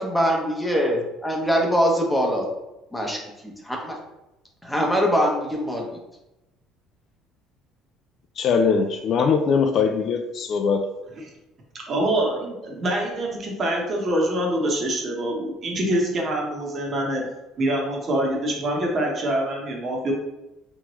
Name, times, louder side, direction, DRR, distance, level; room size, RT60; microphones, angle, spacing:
voice 1, 0.0-2.5 2.9-4.0 4.6-5.9, equal, 5° left, 0 dB, 0.7 m, -23 dB
voice 2, 8.4-10.9, left 5 dB, 50° left, 6 dB, 0.3 m, -21 dB
voice 3, 11.9-17.2 17.6-20.1, right 1 dB, 35° right, -1 dB, 0.9 m, -25 dB
3.5 x 3.1 x 3.0 m, 0.95 s
cardioid pair, 130°, 0 cm